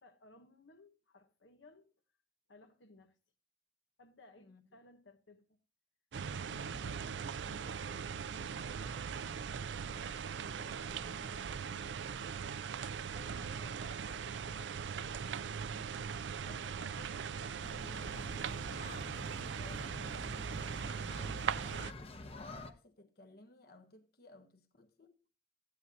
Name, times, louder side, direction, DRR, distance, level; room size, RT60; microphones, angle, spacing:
voice 1, 0.0-1.9 2.5-3.2 4.0-5.6 6.4-11.9 13.4-14.9, left 2 dB, 85° left, 1.1 m, -61 dB
sound 1, 6.1-21.9, right 6 dB, 75° right, 0.4 m, -40 dB
voice 2, 13.1-14.0 15.7-16.1 16.4-19.0 19.6-21.8 22.2-25.1, left 2 dB, 55° left, 1.1 m, -58 dB
sound 2, 17.6-22.7, left 1 dB, 35° left, 0.9 m, -48 dB
14.0 x 9.7 x 2.8 m
head